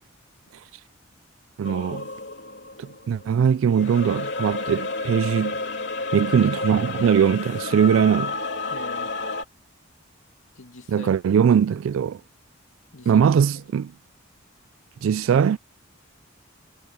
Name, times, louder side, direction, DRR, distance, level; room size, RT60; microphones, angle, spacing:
sound 1, 1.6-3.3 3.7-9.4, left 3 dB, 60° left, 3.2 m, -31 dB
voice 1, 1.6-2.1 2.8-5.6 6.1-8.3 10.9-12.2 13.1-13.9 15.0-15.6, right 7 dB, 80° right, 0.3 m, -21 dB
voice 2, 8.7-9.4 10.5-11.1 12.9-13.2, left 2 dB, 80° left, 2.5 m, -42 dB
head